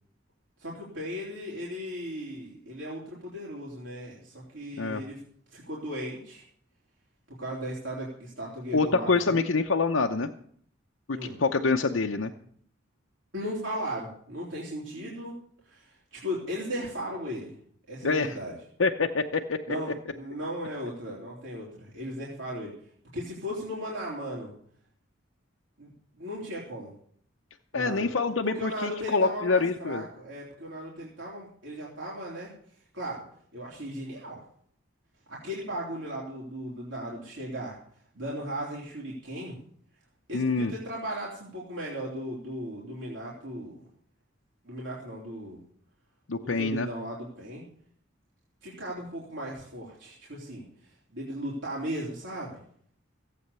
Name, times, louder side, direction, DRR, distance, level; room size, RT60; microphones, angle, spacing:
voice 1, 0.6-5.2 5.5-6.4 7.3-9.4 11.1-11.4 13.3-15.4 15.6-17.6 17.9-18.5 19.7-22.7 23.1-24.5 25.8-26.9 27.7-28.1 28.4-32.5 32.9-33.2 33.5-34.4 35.3-37.8 38.1-39.6 40.3-43.8 44.6-45.6 46.4-47.6 48.6-52.6, equal, 70° right, -5 dB, 3.5 m, -37 dB
voice 2, 8.7-10.3 11.1-12.3 18.0-18.4 18.8-19.8 27.7-30.0 40.3-40.7 46.3-46.9, left 4 dB, 85° left, 3 dB, 0.8 m, -26 dB
16.0 x 8.5 x 6.8 m, 0.62 s
head